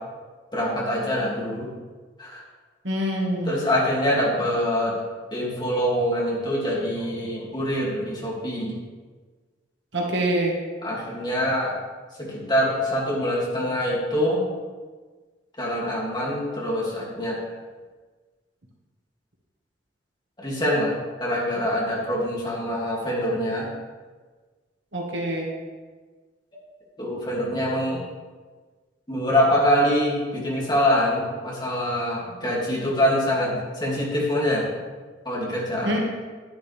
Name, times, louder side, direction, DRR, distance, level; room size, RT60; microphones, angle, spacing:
voice 1, 0.5-1.7 2.2-2.4 3.4-4.9 5.3-8.8 10.8-11.7 12.2-14.4 15.6-17.4 20.4-20.9 21.2-23.7 27.0-28.0 29.1-34.6 35.2-36.0, equal, 25° left, -5 dB, 2.6 m, -24 dB
voice 2, 2.8-3.5 9.9-10.6 24.9-25.5 35.8-36.0, right 1 dB, 80° right, -1 dB, 1.7 m, -25 dB
10.0 x 10.0 x 3.5 m, 1.4 s
head